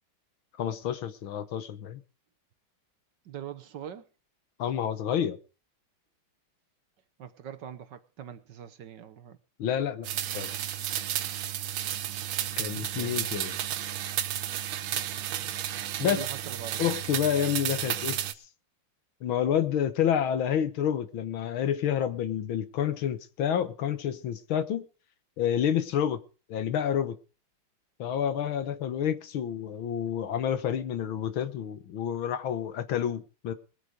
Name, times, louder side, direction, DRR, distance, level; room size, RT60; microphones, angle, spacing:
voice 1, 0.6-2.0 4.6-5.4 9.6-10.1 10.3-10.5 12.6-13.5 16.0-16.2 16.8-18.2 19.2-24.9 25.4-26.2 26.5-27.2 28.0-33.5, left 9 dB, 70° left, 1.9 m, -29 dB
voice 2, 3.2-4.1 7.2-9.4 12.4-13.2 16.0-16.9, right 10 dB, 60° right, 1.5 m, -42 dB
sound 1, 10.0-18.3, right 11 dB, 80° right, 1.8 m, -32 dB
20.5 x 8.3 x 5.1 m
omnidirectional pair, 2.4 m